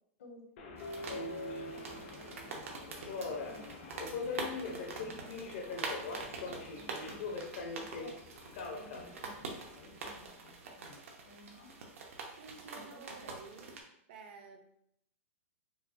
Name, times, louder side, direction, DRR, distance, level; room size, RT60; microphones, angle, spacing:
Subway metro underground, 0.6-10.3, left 3 dB, 50° left, 0.7 m, -42 dB
sound 1, 0.8-13.8, right 3 dB, 85° right, 0.8 m, -45 dB
voice 1, 1.0-1.4 1.7-8.3 8.7-11.7 12.7-13.2, left 1 dB, 75° left, -1 dB, 1.3 m, -57 dB
voice 2, 8.6-8.9 12.4-13.8 14.1-14.6, right 5 dB, 45° right, 5 dB, 0.5 m, -52 dB
4.8 x 2.1 x 2.5 m, 0.72 s
supercardioid pair, 165°, 7 cm